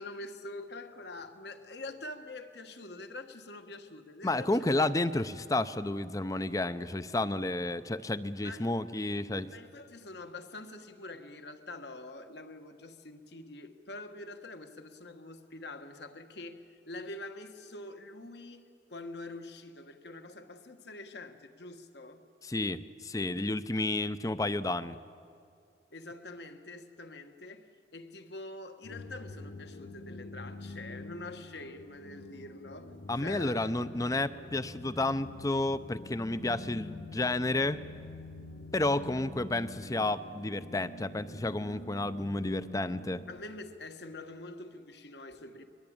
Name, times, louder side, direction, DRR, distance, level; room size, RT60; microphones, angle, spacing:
voice 1, 0.0-4.7 8.4-8.7 9.5-22.2 25.9-33.7 43.3-45.6, left 2 dB, 60° left, 7 dB, 1.5 m, -45 dB
voice 2, 4.2-9.5 22.4-25.0 33.1-37.8 38.7-43.2, left 2 dB, 20° left, 14 dB, 0.6 m, -31 dB
sound 1, 28.8-43.4, left 2 dB, 80° left, 1.2 m, -46 dB
22.0 x 21.5 x 8.7 m, 2.4 s
head